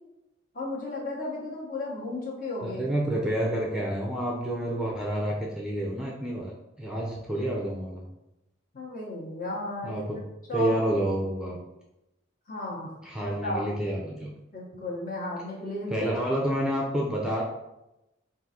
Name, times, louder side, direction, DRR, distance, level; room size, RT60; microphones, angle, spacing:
voice 1, 0.5-2.8 7.5-7.7 8.7-10.0 10.5-11.2 12.5-12.9 13.2-13.8 14.5-16.1, left 2 dB, 45° left, -3 dB, 1.1 m, -34 dB
voice 2, 2.6-6.5 6.8-8.1 9.8-10.2 10.5-11.6 13.0-14.3 15.9-17.4, right 1 dB, 5° right, -3 dB, 0.5 m, -29 dB
3.8 x 2.5 x 4.2 m, 0.92 s
head